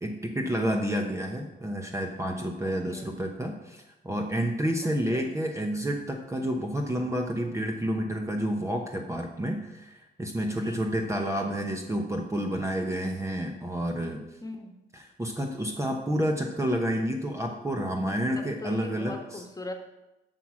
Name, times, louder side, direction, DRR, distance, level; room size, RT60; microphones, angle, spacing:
voice 1, 0.0-14.2 14.9-19.4, equal, 15° right, 2 dB, 0.9 m, -30 dB
voice 2, 4.8-5.3 10.5-10.8 14.4-14.7 18.3-19.7, left 2 dB, 20° left, 4 dB, 1.4 m, -40 dB
7.8 x 6.1 x 6.1 m, 1.0 s
cardioid pair, 90°, 20 cm